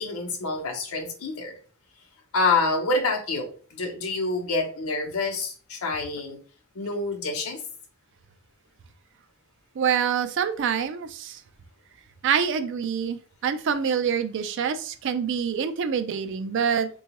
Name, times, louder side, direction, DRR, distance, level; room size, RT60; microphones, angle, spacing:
voice 1, 0.0-1.5 2.3-6.4 6.8-7.6, left 3 dB, 75° left, 0.7 m, -27 dB
voice 2, 9.8-11.4 12.2-16.9, right 7 dB, 55° right, 0.4 m, -26 dB
3.7 x 2.3 x 2.9 m
head